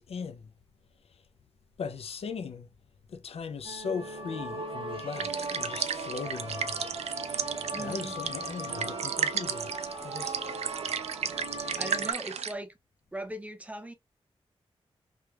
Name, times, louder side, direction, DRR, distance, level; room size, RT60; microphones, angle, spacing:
voice 1, 0.1-0.4 1.8-2.7 3.1-6.9 7.8-9.7 10.0-10.4, left 5 dB, 70° left, 0.5 m, -38 dB
sound 1, 3.6-12.1, right 2 dB, 55° right, 0.8 m, -38 dB
sound 2, 5.1-12.5, right 7 dB, 85° right, 0.4 m, -34 dB
voice 2, 7.7-8.2 11.8-12.7 13.1-13.9, right 1 dB, 15° right, 0.5 m, -39 dB
3.3 x 3.0 x 2.2 m
wide cardioid pair, 130°, 11 cm